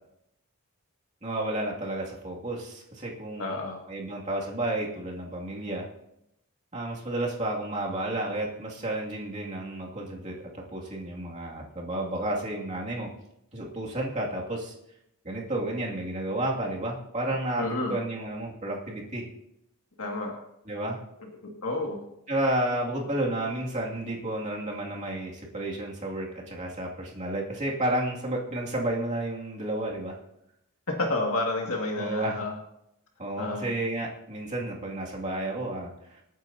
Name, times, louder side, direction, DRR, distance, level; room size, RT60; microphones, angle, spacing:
voice 1, 1.2-3.6 3.9-5.9 6.7-13.1 13.5-14.7 15.2-19.2 20.7-21.0 22.3-30.2 32.0-32.4 33.2-36.2, right 1 dB, 35° right, -3 dB, 2.5 m, -31 dB
voice 2, 3.4-3.8 17.6-18.0 20.0-20.3 21.4-22.0 31.0-32.5 33.4-33.7, left 2 dB, 70° left, 0 dB, 2.1 m, -30 dB
26.0 x 9.3 x 2.8 m, 0.81 s
head